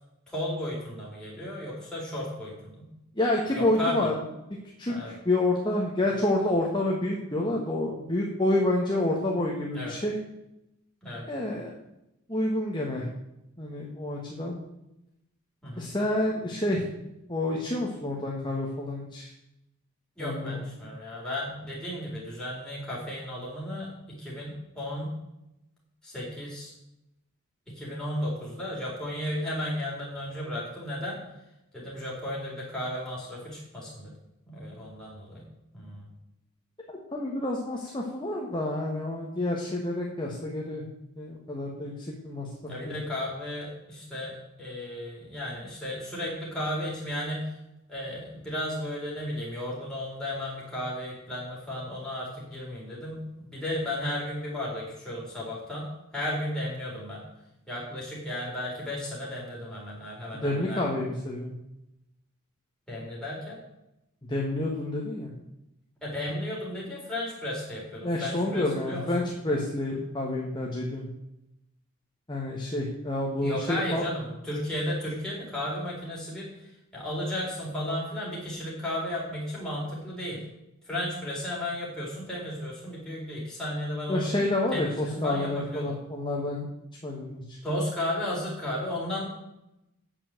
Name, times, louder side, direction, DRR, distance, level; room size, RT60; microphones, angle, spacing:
voice 1, 0.3-2.9 3.5-4.1 4.9-5.1 9.7-9.9 11.0-11.2 15.6-16.0 20.2-25.1 26.0-26.7 27.7-31.2 31.7-34.1 34.4-35.4 35.7-36.0 42.7-47.5 47.9-57.2 57.7-60.9 62.9-63.6 66.0-69.6 73.4-76.5 76.9-80.4 80.9-84.3 84.7-85.9 87.6-89.2, left 1 dB, 5° left, -6 dB, 4.3 m, -34 dB
voice 2, 3.2-4.1 4.8-10.2 11.2-11.7 12.3-13.1 13.6-14.6 15.8-16.8 17.3-19.3 20.2-20.7 37.1-40.8 41.2-41.9 42.2-42.5 42.8-42.9 60.4-61.5 64.3-65.3 68.0-71.0 72.3-74.0 84.1-86.7 87.0-87.6, left 1 dB, 20° left, -2 dB, 1.4 m, -28 dB
8.9 x 7.2 x 7.6 m, 0.88 s
head